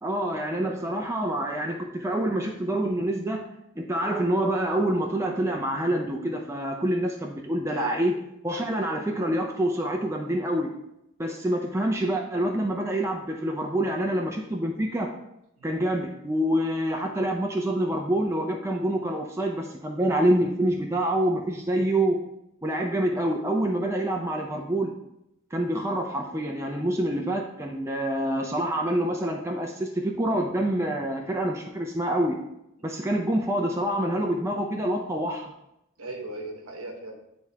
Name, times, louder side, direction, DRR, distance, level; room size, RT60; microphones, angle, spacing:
voice 1, 0.0-3.5 3.8-8.1 8.4-10.7 11.2-15.1 15.6-22.2 22.6-24.9 25.5-32.4 32.8-35.5, right 1 dB, 10° right, 1 dB, 0.5 m, -26 dB
voice 2, 7.7-8.0 8.5-8.9 15.6-15.7 36.0-37.2, right 2 dB, 80° right, 2 dB, 1.1 m, -38 dB
10.0 x 3.5 x 2.8 m, 0.82 s
head